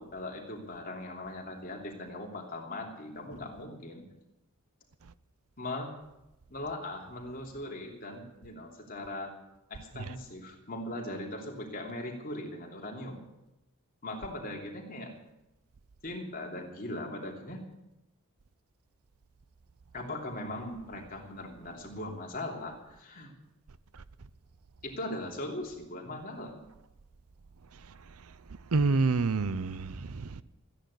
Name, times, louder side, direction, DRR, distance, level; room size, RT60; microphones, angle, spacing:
voice 1, 0.0-4.0 5.6-5.9 6.5-9.3 9.7-13.2 14.0-15.1 16.0-17.6 19.9-23.3 24.8-26.6, left 1 dB, 40° left, 3.1 m, -39 dB
voice 2, 28.7-30.4, right 3 dB, 80° right, 0.7 m, -28 dB
14.5 x 10.0 x 8.3 m
head